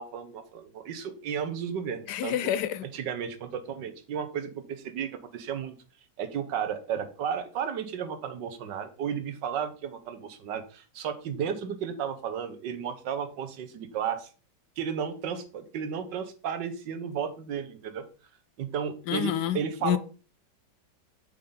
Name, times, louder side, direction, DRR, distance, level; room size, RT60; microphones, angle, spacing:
voice 1, 0.0-2.4 2.8-5.7 6.2-14.3 14.8-18.0 18.6-20.0, right 7 dB, 80° right, 1.6 m, -33 dB
voice 2, 2.1-2.8 19.1-20.0, left 11 dB, 75° left, 1.1 m, -28 dB
8.7 x 5.6 x 3.8 m
omnidirectional pair, 1.9 m